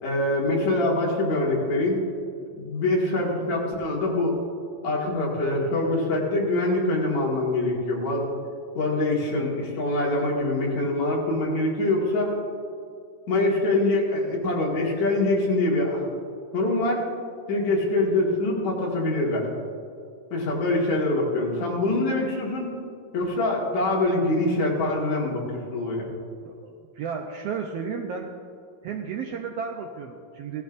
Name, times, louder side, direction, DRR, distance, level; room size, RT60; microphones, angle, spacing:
voice 1, 0.0-2.0 2.6-4.4 4.8-8.3 8.7-12.3 13.3-16.1 16.5-17.0 17.5-19.5 20.3-22.7 23.1-26.1, left 2 dB, 70° left, -3 dB, 3.2 m, -24 dB
voice 2, 26.4-28.3 28.8-30.6, right 6 dB, 75° right, 2 dB, 1.5 m, -33 dB
17.0 x 13.0 x 2.6 m, 2.4 s
omnidirectional pair, 3.4 m